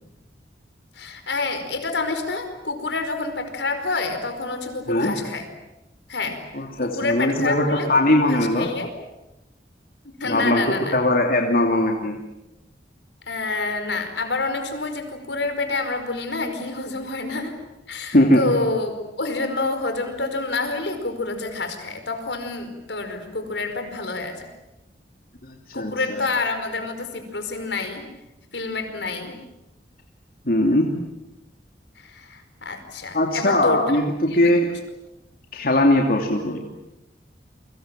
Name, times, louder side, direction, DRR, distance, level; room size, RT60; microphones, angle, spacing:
voice 1, 0.9-5.4 6.1-6.4 6.8-8.9 10.0-11.0 13.3-17.5 17.9-18.9 19.2-24.5 25.7-28.0 28.5-29.3 32.0-33.8 34.3-34.5, left 3 dB, 80° left, 7 dB, 4.9 m, -28 dB
voice 2, 6.5-8.7 10.2-12.2 18.1-18.4 25.4-26.2 30.4-30.9 33.1-34.7 35.5-36.6, left 1 dB, 55° left, 2 dB, 2.9 m, -20 dB
29.5 x 24.5 x 7.6 m, 0.92 s
head